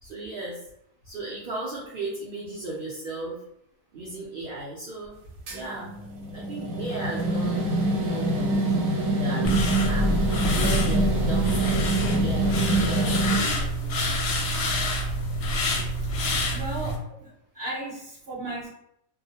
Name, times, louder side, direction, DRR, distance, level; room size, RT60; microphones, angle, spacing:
voice 1, 0.0-0.6 1.0-3.4 3.9-5.1 5.5-5.9 6.3-8.6 9.2-10.2 10.5-14.0, right 2 dB, 65° right, -6 dB, 0.5 m, -36 dB
sound 1, 5.5-13.4, right 2 dB, 85° right, 1.1 m, -25 dB
sound 2, 9.4-17.0, equal, 65° left, 0.8 m, -26 dB
voice 2, 16.5-18.7, right 1 dB, 15° right, -8 dB, 1.0 m, -35 dB
2.3 x 2.0 x 2.8 m, 0.74 s
omnidirectional pair, 1.4 m